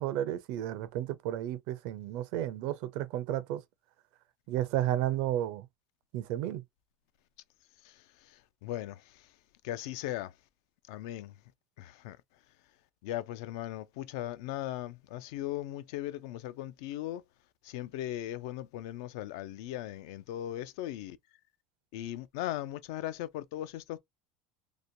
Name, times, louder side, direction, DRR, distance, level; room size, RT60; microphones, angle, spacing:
voice 1, 0.0-3.6 4.5-5.7 6.1-6.6, right 12 dB, 60° right, 0.5 m, -32 dB
voice 2, 8.6-9.0 9.6-10.3 10.9-11.3 11.8-12.2 13.0-17.2 17.6-21.2 21.9-24.0, left 13 dB, 70° left, 0.3 m, -38 dB
2.9 x 2.2 x 2.5 m
cardioid pair, 150°, 2 cm